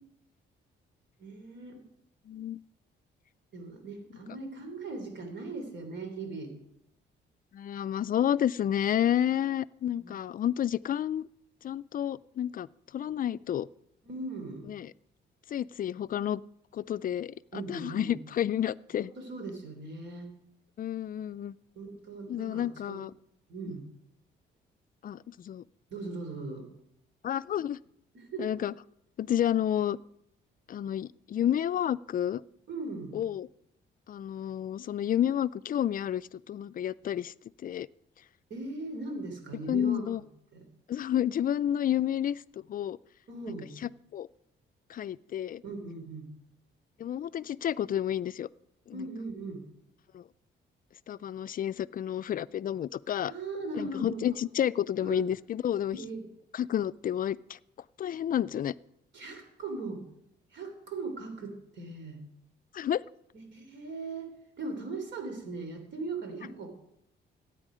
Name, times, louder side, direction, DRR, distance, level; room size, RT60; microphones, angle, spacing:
voice 1, 1.2-1.9 3.5-6.5 9.9-10.1 14.0-14.7 17.5-18.2 19.0-20.3 21.7-23.0 23.5-23.9 25.9-26.7 28.1-28.5 32.7-33.2 38.5-40.1 40.5-40.7 43.3-43.7 45.6-46.3 48.9-49.6 53.3-54.2 55.0-55.2 55.9-56.3 59.1-60.0 60.5-62.2 63.3-64.3 64.6-66.7, right 3 dB, 65° right, 6 dB, 3.2 m, -39 dB
voice 2, 2.3-2.6 7.5-11.3 11.6-12.7 12.9-13.7 14.7-14.9 15.5-16.4 16.7-19.1 20.8-21.5 22.3-23.1 25.0-25.6 27.2-27.8 28.4-28.7 29.2-30.0 30.7-32.4 33.1-33.5 34.1-37.3 37.6-37.9 39.7-40.2 40.9-42.4 42.7-43.0 43.5-43.6 43.8-44.3 44.9-45.6 47.0-48.5 48.9-49.0 50.1-50.2 51.1-53.3 53.8-56.0 56.5-57.6 58.0-58.7 62.7-63.0, left 10 dB, 45° left, 18 dB, 0.4 m, -30 dB
15.5 x 9.1 x 5.0 m, 0.80 s
cardioid pair, 90°, 20 cm